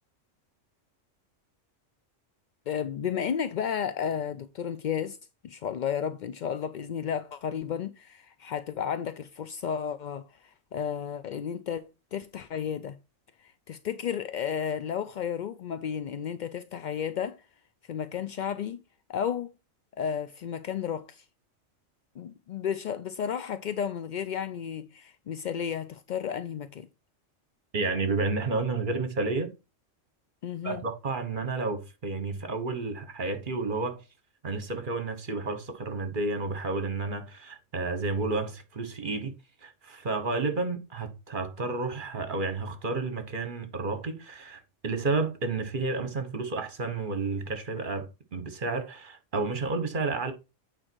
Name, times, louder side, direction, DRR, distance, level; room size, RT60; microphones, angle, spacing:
voice 1, 2.7-5.2 5.4-11.8 12.1-13.0 13.4-17.4 17.9-18.8 19.1-19.5 20.0-21.2 22.2-26.9 30.4-30.8, left 8 dB, 65° left, 0.4 m, -33 dB
voice 2, 27.7-29.5 30.6-34.0 34.4-39.3 39.6-50.3, right 3 dB, 45° right, 1.3 m, -31 dB
8.9 x 4.4 x 4.5 m
omnidirectional pair, 1.3 m